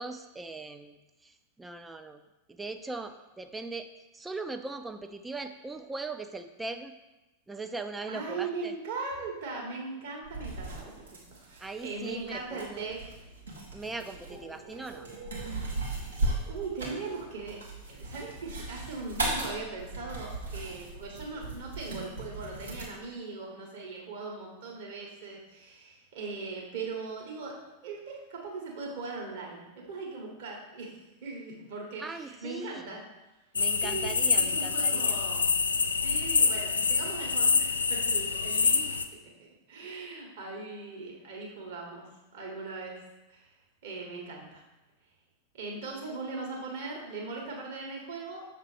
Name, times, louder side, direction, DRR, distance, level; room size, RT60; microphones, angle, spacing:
voice 1, 0.0-2.2 2.5-6.9 7.5-8.7 11.6-12.9 13.7-15.1 32.0-32.9 33.5-35.1, right 3 dB, 10° right, 8 dB, 0.4 m, -40 dB
voice 2, 8.1-10.9 11.4-13.1 14.3-17.6 17.9-27.6 27.8-33.0 33.8-35.5 35.9-38.9 39.1-42.0 42.3-42.9 43.3-43.5 43.8-44.6 45.5-48.5, right 4 dB, 55° right, -2 dB, 1.8 m, -39 dB
sound 1, 10.2-22.8, right 2 dB, 75° right, 1.5 m, -37 dB
sound 2, 33.5-39.0, left 5 dB, 75° left, 0.4 m, -26 dB
6.5 x 3.3 x 5.0 m, 1.0 s
figure-of-eight pair, 90°, 0 cm